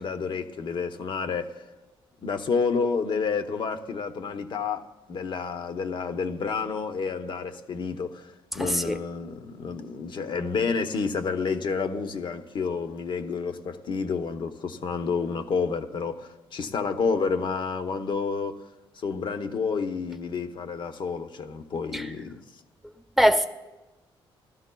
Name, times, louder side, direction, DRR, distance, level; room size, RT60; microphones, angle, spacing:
voice 1, 0.0-1.6 2.2-18.6 19.0-22.4, left 5 dB, 55° left, 0.8 m, -29 dB
voice 2, 8.5-9.0 21.9-22.1 23.2-23.5, equal, ahead, 0.7 m, -22 dB
19.0 x 13.0 x 2.3 m
cardioid pair, 105°, 10 cm